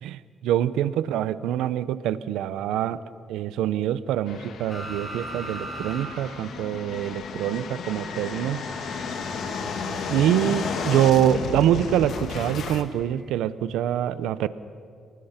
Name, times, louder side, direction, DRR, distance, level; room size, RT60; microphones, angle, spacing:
voice 1, 0.0-3.0 3.3-8.6 10.1-14.5, right 11 dB, 90° right, 15 dB, 0.9 m, -25 dB
sound 1, 4.3-12.8, left 5 dB, 65° left, 2.0 m, -33 dB
sound 2, 4.7-6.1 6.4-6.5 8.1-11.2 12.9-13.0, right 2 dB, 15° left, 8.0 m, -40 dB
29.5 x 20.0 x 5.9 m, 2.5 s
cardioid pair, 90°, 0 cm